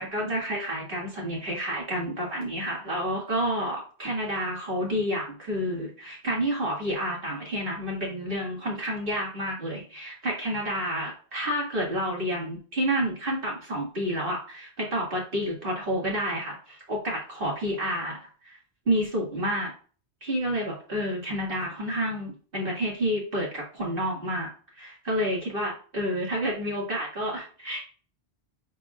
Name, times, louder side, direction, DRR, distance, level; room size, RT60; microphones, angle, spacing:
voice 1, 0.0-18.2 18.4-18.6 18.9-19.7 20.2-24.5 24.8-27.8, equal, 55° right, -3 dB, 2.2 m, -29 dB
10.0 x 4.3 x 2.4 m, 0.39 s
omnidirectional pair, 1.1 m